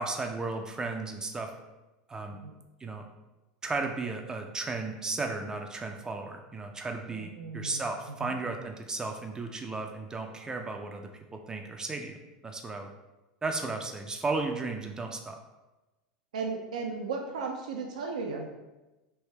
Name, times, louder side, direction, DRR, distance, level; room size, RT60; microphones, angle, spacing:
voice 1, 0.0-1.5 2.1-2.4 2.8-3.1 3.6-12.2 12.4-12.9 13.4-15.4, right 3 dB, 20° right, 4 dB, 0.4 m, -34 dB
voice 2, 7.1-7.8 8.2-8.3 16.3-18.5, right 4 dB, 85° right, 2 dB, 0.4 m, -35 dB
3.3 x 2.7 x 3.2 m, 1.1 s
hypercardioid pair, 95°, 4 cm